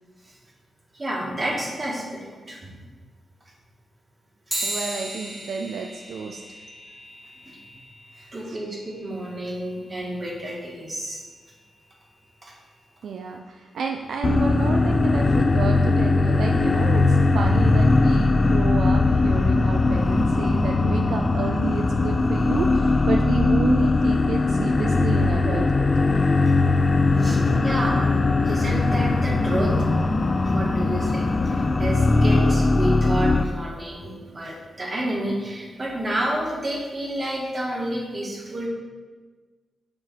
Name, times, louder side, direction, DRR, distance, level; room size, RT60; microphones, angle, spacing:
voice 1, 0.9-2.8 7.4-7.6 8.3-11.2 12.4-12.5 27.2-29.7 30.4-38.7, right 1 dB, 35° right, -2 dB, 1.6 m, -30 dB
sound 1, 4.5-14.3, right 1 dB, 10° right, 1.0 m, -39 dB
voice 2, 4.6-6.4 8.1-8.3 13.0-25.9, right 5 dB, 80° right, 2 dB, 0.3 m, -30 dB
sound 2, 14.2-33.4, left 3 dB, 40° left, 0.3 m, -20 dB
6.8 x 3.3 x 4.4 m, 1.4 s
cardioid pair, 70°, 0 cm